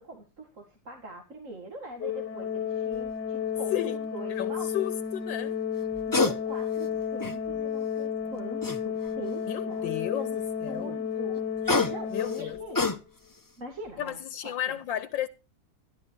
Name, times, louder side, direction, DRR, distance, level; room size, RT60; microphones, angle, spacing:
voice 1, 0.0-4.8 6.1-9.8 10.1-10.4 10.7-11.5 11.9-12.8 13.6-14.7, right 1 dB, 45° right, 2.3 m, -42 dB
Organ, 2.0-12.9, left 7 dB, 70° left, 1.5 m, -32 dB
sound 1, 2.9-3.1 5.8-6.4 6.8-7.6 8.6-9.3 11.4-13.4 13.8-14.1, left 4 dB, 15° left, 0.7 m, -28 dB
voice 2, 3.7-5.6 9.5-10.3 10.6-11.0 12.1-12.6 14.0-15.3, left 11 dB, 90° left, 1.5 m, -33 dB
sound 2, 5.8-6.4 6.8-7.1 7.5-7.7 8.1-8.5 9.1-9.4 9.9-10.1 10.8-11.2 11.5-12.8, right 3 dB, 90° right, 3.1 m, -51 dB
12.0 x 12.0 x 4.6 m
omnidirectional pair, 2.0 m